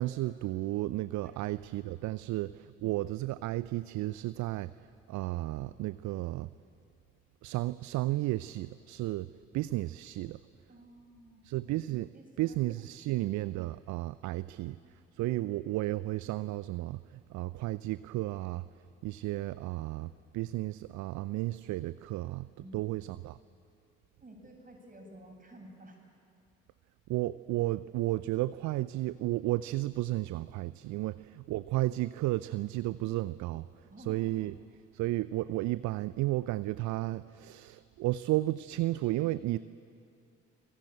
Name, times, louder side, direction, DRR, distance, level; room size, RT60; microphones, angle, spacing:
voice 1, 0.0-6.5 7.4-9.3 9.5-10.4 11.4-12.1 12.4-18.7 19.0-23.4 27.1-34.6 34.9-39.6, right 17 dB, 55° right, 16 dB, 0.6 m, -33 dB
voice 2, 10.7-11.5 12.1-12.6 13.0-13.3 14.3-15.0 22.6-22.8 24.2-26.0 30.9-31.1 33.9-34.3, right 1 dB, 25° right, 1 dB, 7.8 m, -53 dB
26.5 x 19.0 x 9.0 m, 2.4 s
figure-of-eight pair, 45°, 35 cm